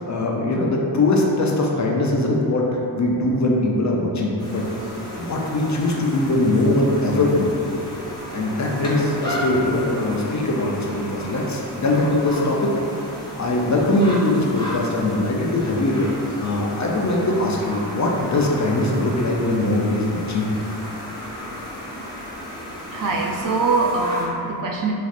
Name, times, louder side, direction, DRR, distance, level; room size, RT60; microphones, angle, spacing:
voice 1, 0.1-2.7 3.0-4.6 5.2-7.5 8.3-12.7 13.4-16.1 16.4-20.5, left 2 dB, 40° left, -1 dB, 0.5 m, -21 dB
sound 1, 4.4-24.3, equal, 10° left, 1.0 m, -34 dB
voice 2, 22.9-24.9, right 3 dB, 50° right, 0 dB, 0.4 m, -22 dB
3.2 x 2.5 x 2.4 m, 2.7 s
cardioid pair, 45°, 45 cm